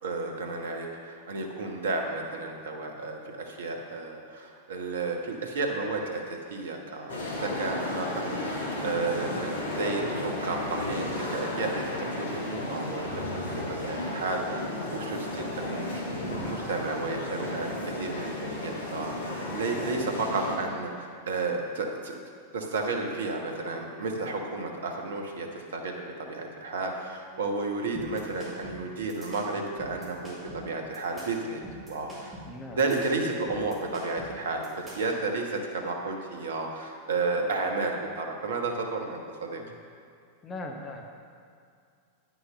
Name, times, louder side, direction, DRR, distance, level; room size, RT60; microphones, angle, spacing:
voice 1, 0.0-11.8 12.2-13.1 13.3-22.2 22.5-31.6 31.9-32.4 32.7-34.7 34.9-39.6, right 3 dB, 65° right, 2 dB, 1.2 m, -32 dB
sound 1, 7.1-20.6, left 1 dB, 65° left, 1.9 m, -33 dB
sound 2, 27.9-35.2, right 1 dB, 15° right, 2.6 m, -44 dB
voice 2, 32.5-32.8 39.6-39.7 40.4-41.0, left 2 dB, 20° left, 2 dB, 0.9 m, -40 dB
9.7 x 6.2 x 5.5 m, 2.4 s
figure-of-eight pair, 90°, 0 cm